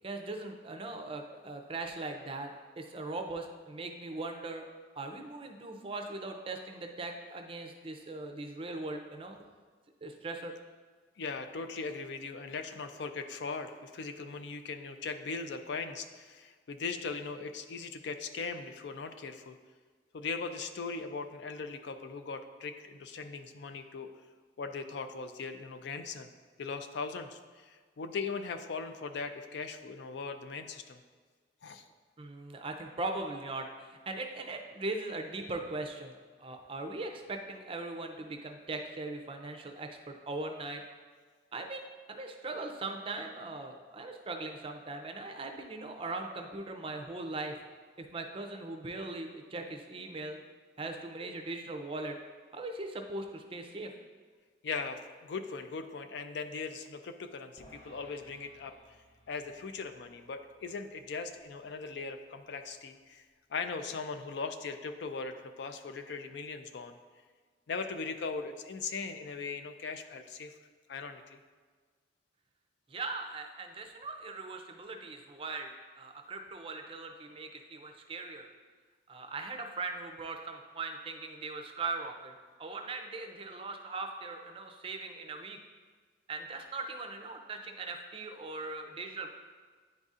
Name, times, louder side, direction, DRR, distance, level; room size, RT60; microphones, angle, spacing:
voice 1, 0.0-2.5 2.8-4.6 5.0-9.4 10.0-10.6 32.2-40.8 41.5-47.6 48.0-50.4 50.8-52.2 52.5-53.9 72.9-78.5 79.1-82.3 82.6-85.6 86.3-89.3, right 3 dB, 30° right, 4 dB, 0.5 m, -40 dB
voice 2, 11.2-19.6 20.1-24.1 24.6-26.3 26.6-31.0 31.6-31.8 54.6-58.7 59.3-63.2 63.5-66.9 67.7-70.5 70.9-71.4, left 4 dB, 60° left, 8 dB, 0.4 m, -39 dB
sound 1, 57.6-64.0, equal, 35° left, 0.7 m, -62 dB
9.6 x 4.0 x 2.4 m, 1.5 s
head